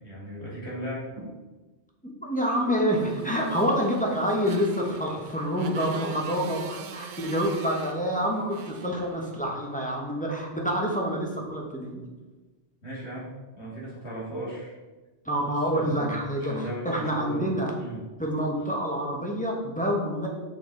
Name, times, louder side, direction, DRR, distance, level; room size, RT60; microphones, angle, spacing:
voice 1, 0.0-1.3 12.8-14.8 15.7-17.5 17.8-18.0, equal, 75° left, -5 dB, 2.5 m, -37 dB
voice 2, 2.0-12.0 15.2-17.7 18.2-20.3, equal, 5° left, -2 dB, 1.1 m, -27 dB
Motorcycle, 3.0-9.7, right 6 dB, 55° right, 0.6 m, -44 dB
6.3 x 6.2 x 3.9 m, 1.2 s
omnidirectional pair, 1.1 m